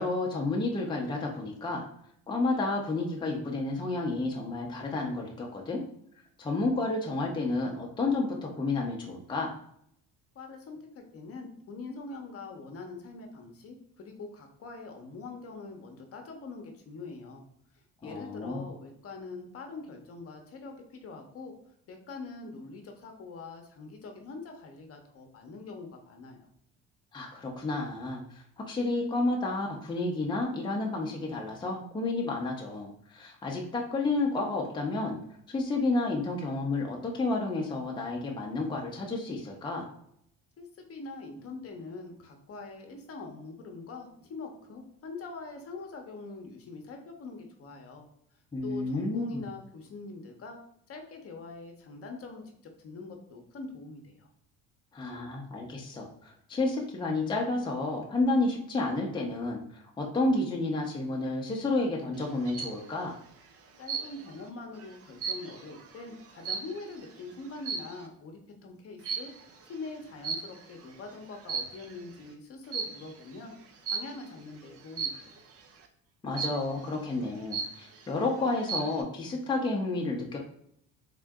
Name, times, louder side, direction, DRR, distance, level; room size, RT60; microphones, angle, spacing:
voice 1, 0.0-1.8 2.3-5.8 6.4-9.5 18.0-18.6 27.1-28.2 28.6-35.2 35.5-39.9 48.5-49.4 54.9-59.6 60.0-63.2 76.2-80.4, left 2 dB, 15° left, -1 dB, 0.6 m, -31 dB
voice 2, 10.3-17.4 18.0-21.5 21.9-26.5 40.6-48.1 48.6-50.6 50.9-54.3 63.8-69.3 69.6-73.5 73.9-75.4, left 3 dB, 45° left, 3 dB, 0.8 m, -43 dB
sound 1, 62.2-62.8 63.9-64.4 64.8-67.0 67.6-68.0 69.0-69.4 70.2-70.8 71.3-72.0 72.7-73.1 73.9-74.3 75.0-75.4 76.4-76.8 77.2-77.3 77.5-78.1 78.5-79.0, right 5 dB, 45° right, 0.6 m, -35 dB
3.7 x 2.5 x 3.5 m, 0.70 s
cardioid pair, 115°, 33 cm